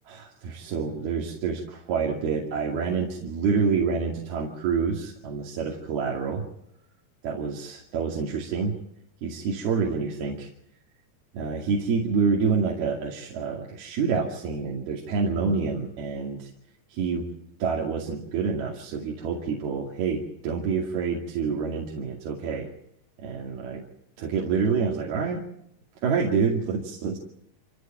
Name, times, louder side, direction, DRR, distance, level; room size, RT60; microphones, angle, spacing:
voice 1, 0.1-6.4 7.2-8.7 9.2-10.5 11.3-16.5 16.9-17.3 17.6-22.7 23.2-23.8 24.2-25.4 26.0-27.2, right 5 dB, 70° right, -1 dB, 4.3 m, -27 dB
27.0 x 16.5 x 9.0 m, 0.78 s
omnidirectional pair, 4.7 m